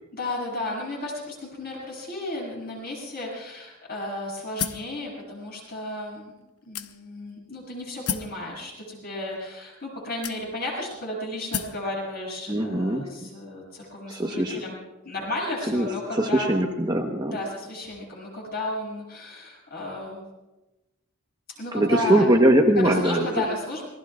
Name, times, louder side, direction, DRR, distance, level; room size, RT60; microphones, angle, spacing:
voice 1, 0.1-6.3 6.7-14.8 15.0-16.5 17.3-20.2 21.6-22.3 22.8-23.8, left 1 dB, 45° left, -2 dB, 7.9 m, -33 dB
sound 1, 4.6-4.9 5.7-5.8 6.7-7.3 8.1-8.4 9.3-9.4 10.2-10.8 11.5-11.8, left 8 dB, 85° left, 0.8 m, -31 dB
voice 2, 12.5-13.3 14.1-14.6 15.7-15.9 16.1-17.4 21.7-23.4, right 1 dB, 20° right, 2 dB, 1.1 m, -22 dB
26.5 x 20.5 x 2.5 m, 1.0 s
head